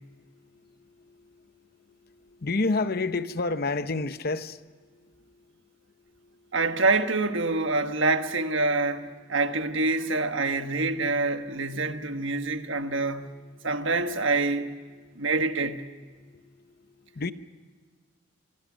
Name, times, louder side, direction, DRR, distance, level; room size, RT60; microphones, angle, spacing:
voice 1, 0.0-5.4 6.1-6.5 11.6-11.9 12.7-13.0 15.0-15.2 16.2-17.3, left 3 dB, 45° left, 0.8 m, -33 dB
voice 2, 6.5-13.3 13.6-14.7 15.2-15.9, right 3 dB, 65° right, 1.5 m, -26 dB
27.0 x 24.0 x 6.3 m
head